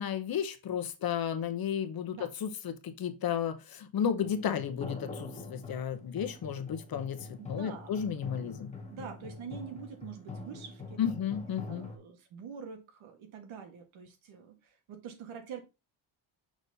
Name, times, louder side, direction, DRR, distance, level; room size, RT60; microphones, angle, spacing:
voice 1, 0.0-8.7 11.0-11.9, left 8 dB, 50° left, 0.8 m, -33 dB
sound 1, 4.2-12.0, left 3 dB, 15° left, 1.2 m, -45 dB
voice 2, 7.4-8.0 8.9-11.2 11.7-15.6, right 6 dB, 80° right, 1.6 m, -45 dB
6.2 x 3.9 x 4.0 m
wide cardioid pair, 170°, 47 cm